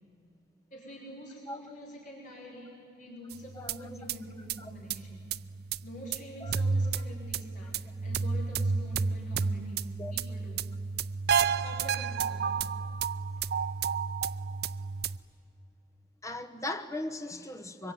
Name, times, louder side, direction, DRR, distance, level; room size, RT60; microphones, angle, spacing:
voice 1, 0.7-5.3 5.8-10.7 11.6-12.7, equal, 45° left, 5.4 m, -46 dB
sound 1, 3.3-15.2, right 5 dB, 60° right, 0.5 m, -32 dB
voice 2, 16.2-17.9, left 2 dB, 15° left, 1.1 m, -38 dB
25.0 x 23.0 x 9.6 m
head